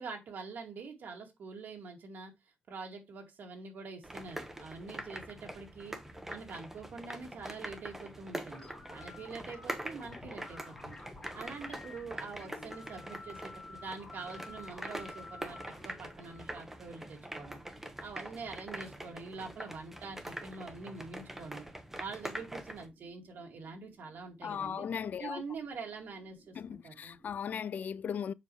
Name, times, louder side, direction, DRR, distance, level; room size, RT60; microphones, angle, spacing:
voice 1, 0.0-2.3 2.7-6.0 6.3-11.0 11.3-17.6 18.0-21.6 22.0-24.9 25.2-27.2, right 4 dB, 70° right, 2.2 m, -45 dB
sound 1, 4.0-22.9, right 1 dB, 10° right, 1.1 m, -44 dB
sound 2, 7.5-27.2, right 2 dB, 35° right, 5.1 m, -65 dB
sound 3, 8.5-17.4, left 3 dB, 25° left, 4.3 m, -51 dB
voice 2, 24.4-25.4 26.6-28.3, left 7 dB, 60° left, 0.3 m, -37 dB
7.4 x 5.6 x 3.2 m
wide cardioid pair, 140°, 3 cm